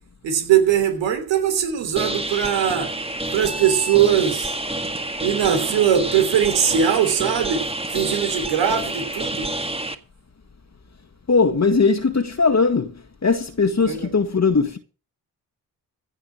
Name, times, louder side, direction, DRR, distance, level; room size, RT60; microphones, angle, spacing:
voice 1, 0.2-2.9 3.3-4.5 5.2-7.6 7.9-9.5 13.8-14.1, right 9 dB, 85° right, 3.3 m, -20 dB
sound 1, 2.0-10.0, right 1 dB, 15° right, 1.8 m, -28 dB
voice 2, 11.3-12.9 13.2-14.8, left 4 dB, 40° left, 1.8 m, -19 dB
15.5 x 5.6 x 8.5 m
supercardioid pair, 45°, 43 cm